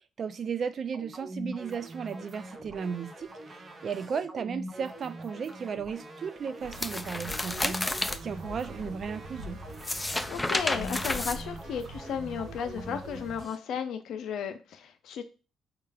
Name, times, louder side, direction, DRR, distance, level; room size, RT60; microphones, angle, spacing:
voice 1, 0.2-7.8 8.2-9.6, right 6 dB, 55° right, 0.4 m, -35 dB
sound 1, 0.9-13.6, right 1 dB, 35° right, 0.7 m, -43 dB
sound 2, 6.6-13.5, right 1 dB, 80° right, 0.8 m, -44 dB
sound 3, 6.7-8.2 9.7-12.0, left 1 dB, 15° left, 0.4 m, -31 dB
voice 2, 10.3-15.2, left 7 dB, 75° left, 0.5 m, -34 dB
4.5 x 2.3 x 3.4 m
supercardioid pair, 65°, 0 cm